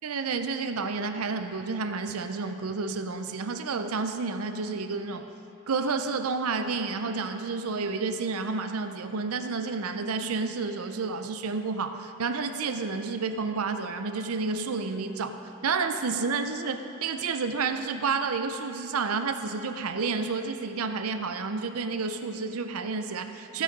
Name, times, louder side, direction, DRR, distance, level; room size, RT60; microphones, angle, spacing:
voice 1, 0.0-5.3 5.7-15.4 15.6-23.6, right 4 dB, 85° right, 8 dB, 0.6 m, -30 dB
16.0 x 6.3 x 5.2 m, 2.9 s
head